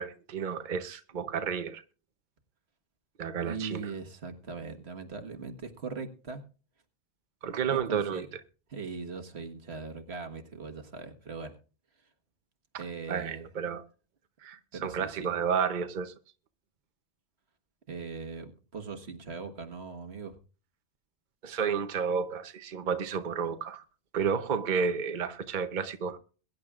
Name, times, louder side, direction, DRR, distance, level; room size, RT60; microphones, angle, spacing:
voice 1, 0.0-1.8 3.2-3.9 7.4-8.3 12.7-12.8 13.1-13.8 14.4-16.1 21.4-23.8 24.1-26.2, right 6 dB, 50° right, 0.9 m, -31 dB
voice 2, 3.4-6.4 7.7-8.3 8.7-11.6 12.8-13.4 14.7-15.3 17.9-20.4, right 4 dB, 85° right, 1.8 m, -40 dB
22.0 x 10.5 x 2.4 m
omnidirectional pair, 1.1 m